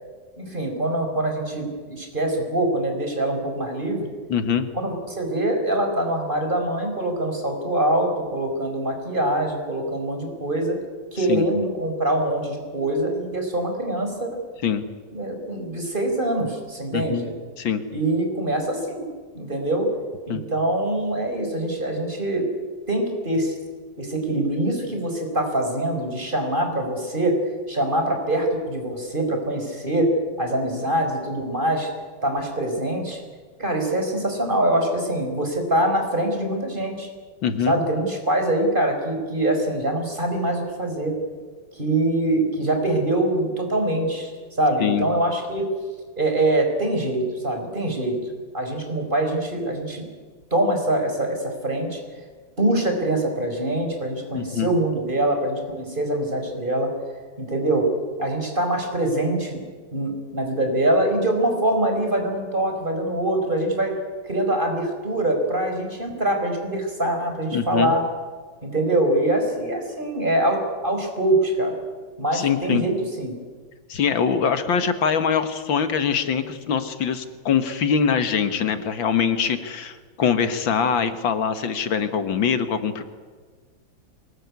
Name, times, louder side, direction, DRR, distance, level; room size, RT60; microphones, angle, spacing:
voice 1, 0.4-4.1 4.8-10.8 11.1-14.3 15.1-17.3 17.9-19.0 19.3-19.9 20.3-22.5 22.9-23.6 24.0-27.4 27.7-30.1 30.4-31.9 32.2-33.2 33.6-37.1 37.7-41.2 41.7-45.6 46.2-48.2 48.5-50.0 50.5-52.0 52.6-56.9 57.4-57.9 58.2-59.6 59.9-63.9 64.3-68.0 68.6-71.8 72.2-73.3, right 1 dB, 25° right, 3 dB, 4.7 m, -24 dB
voice 2, 4.3-4.7 11.3-11.5 14.6-14.9 16.9-17.3 17.6-17.8 20.3-20.4 37.4-37.8 44.8-45.1 54.3-54.7 67.5-67.9 72.3-72.8 73.9-83.0, left 7 dB, 75° left, 10 dB, 2.2 m, -23 dB
23.0 x 20.5 x 9.6 m, 1.5 s
omnidirectional pair, 2.1 m